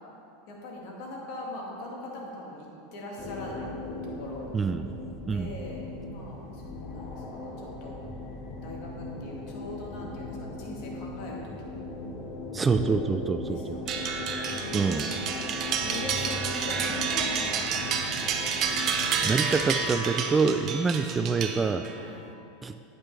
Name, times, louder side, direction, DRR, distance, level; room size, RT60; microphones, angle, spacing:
voice 1, 0.5-3.7 4.0-4.5 5.3-8.0 8.6-11.7 13.5-14.1 14.5-15.3 15.8-18.2 20.6-20.7 21.9-22.2, left 1 dB, 55° left, -2 dB, 1.9 m, -41 dB
sound 1, 3.2-19.3, left 2 dB, 35° left, 1.3 m, -38 dB
voice 2, 4.5-4.9 5.3-5.5 12.5-13.8 14.7-15.1 18.8-21.8 22.6-22.7, right 5 dB, 20° right, 9 dB, 0.3 m, -26 dB
sound 2, 13.9-22.0, right 6 dB, 45° right, 0.7 m, -30 dB
8.7 x 8.7 x 3.3 m, 2.8 s
hypercardioid pair, 90°, 0 cm